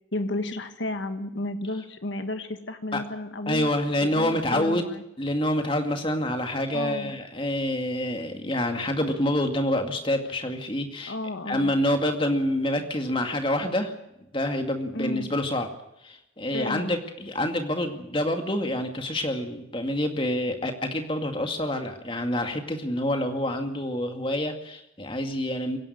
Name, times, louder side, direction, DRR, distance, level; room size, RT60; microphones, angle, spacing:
voice 1, 0.1-3.7 4.0-5.0 6.7-7.1 11.1-11.7 14.9-15.3 16.5-17.0, left 1 dB, 80° left, 8 dB, 1.5 m, -32 dB
voice 2, 3.5-4.9 5.2-11.1 11.5-13.9 14.3-15.7 16.0-25.8, left 1 dB, 25° left, 5 dB, 2.2 m, -27 dB
24.0 x 11.0 x 9.8 m, 0.85 s
head